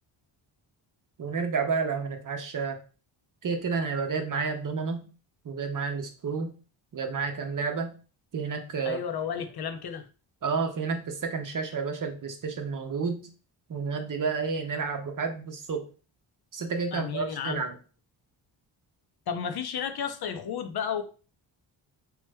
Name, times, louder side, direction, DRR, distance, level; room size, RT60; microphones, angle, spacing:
voice 1, 1.2-2.8 3.4-5.1 5.4-6.5 6.9-8.0 8.3-9.0 10.4-13.3 13.7-15.9 16.5-17.7, right 5 dB, 40° right, 0.7 m, -30 dB
voice 2, 8.8-10.1 16.9-17.6 19.3-21.0, left 7 dB, 50° left, 0.6 m, -32 dB
3.0 x 2.1 x 3.4 m
supercardioid pair, 55°, 49 cm